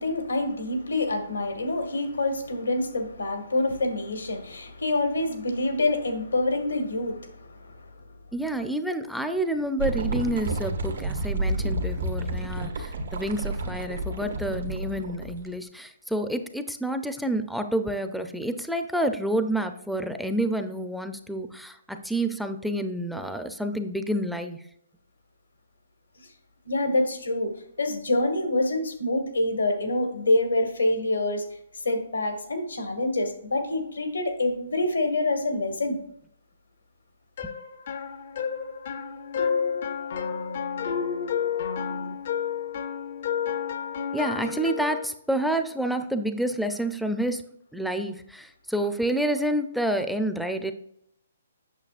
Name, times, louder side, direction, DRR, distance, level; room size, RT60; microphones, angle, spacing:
voice 1, 0.0-7.9 26.6-31.4 31.8-36.0, left 2 dB, 90° left, 1.6 m, -26 dB
voice 2, 8.3-24.6 37.4-37.5 44.1-47.4 47.7-50.7, right 1 dB, ahead, 0.5 m, -29 dB
sound 1, 9.8-15.5, right 2 dB, 80° right, 1.4 m, -30 dB
sound 2, 37.4-45.1, left 7 dB, 55° left, 0.6 m, -30 dB
8.2 x 6.5 x 2.5 m
hypercardioid pair, 140°, 0 cm